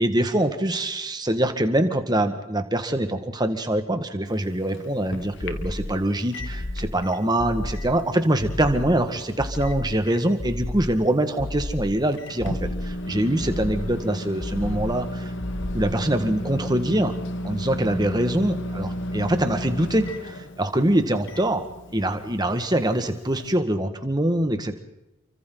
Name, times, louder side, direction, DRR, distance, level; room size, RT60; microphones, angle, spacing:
voice 1, 0.0-15.3 15.7-17.2 17.4-21.7 21.9-24.8, right 1 dB, 20° right, 7 dB, 1.7 m, -24 dB
Microwave oven, 4.2-23.6, equal, 55° left, 1.7 m, -35 dB
sound 1, 5.4-6.0 6.4-7.0 7.4-8.0 8.4-9.0 9.4-10.0 10.4-11.0 11.4-12.0 12.4-13.0 13.4-14.0 14.4-15.0 15.4-16.0, left 1 dB, 25° left, 0.7 m, -32 dB
30.0 x 24.5 x 4.0 m, 0.96 s
head